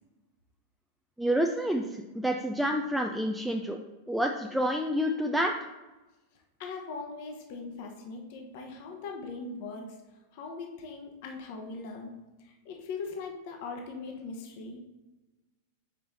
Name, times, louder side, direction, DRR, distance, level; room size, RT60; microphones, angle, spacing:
voice 1, 1.2-3.8 4.1-5.5, equal, 5° right, 2 dB, 0.4 m, -28 dB
voice 2, 6.6-9.9 10.3-12.1 12.4-14.8, left 4 dB, 50° left, 2 dB, 1.0 m, -40 dB
5.6 x 4.6 x 4.0 m, 1.1 s
figure-of-eight pair, 90°, 0 cm